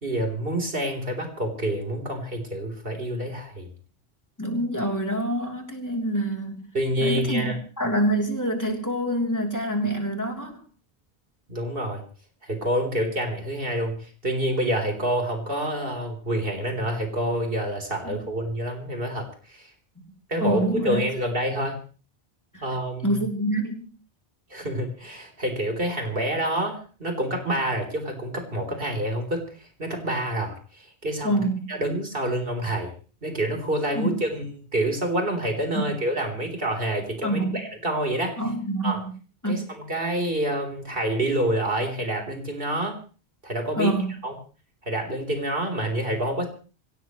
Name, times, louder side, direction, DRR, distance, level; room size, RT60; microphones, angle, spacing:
voice 1, 0.0-3.7 6.7-7.6 11.5-12.0 12.4-19.7 20.3-21.8 22.6-23.2 24.5-31.4 31.7-32.9 33.2-34.4 34.7-38.4 38.8-39.0 39.5-43.0 43.4-43.9 44.2-44.3 44.8-46.4, right 1 dB, 60° right, 3 dB, 4.1 m, -27 dB
voice 2, 4.4-6.7 7.0-10.5 18.0-18.1 20.0-20.1 20.4-21.0 22.5-22.6 23.0-23.9 31.2-31.7 33.9-34.1 37.2-37.6 38.4-39.1 39.4-39.7 43.7-44.2, right 1 dB, 15° left, 2 dB, 3.4 m, -26 dB
25.0 x 16.5 x 3.2 m, 0.36 s
omnidirectional pair, 1.0 m